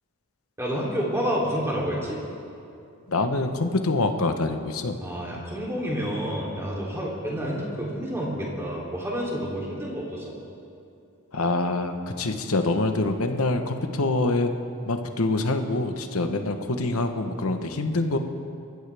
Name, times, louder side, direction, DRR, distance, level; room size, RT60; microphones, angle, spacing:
voice 1, 0.6-2.2 5.0-10.3, equal, 10° right, -4 dB, 3.1 m, -29 dB
voice 2, 3.1-5.0 11.3-14.6 14.9-18.2, left 2 dB, 75° left, 6 dB, 1.1 m, -25 dB
25.5 x 14.0 x 3.5 m, 2.5 s
head